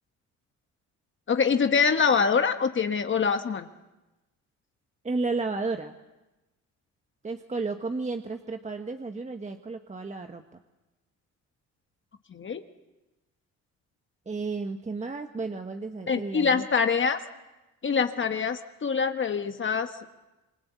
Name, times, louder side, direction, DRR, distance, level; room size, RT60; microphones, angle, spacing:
voice 1, 1.3-3.7 12.3-12.6 16.1-17.2 17.8-19.9, left 5 dB, 40° left, 7 dB, 1.4 m, -24 dB
voice 2, 5.0-6.0 7.2-10.4 14.2-16.6, right 3 dB, 25° right, 5 dB, 1.4 m, -32 dB
27.0 x 23.0 x 8.2 m, 1.1 s
cardioid pair, 90°, 30 cm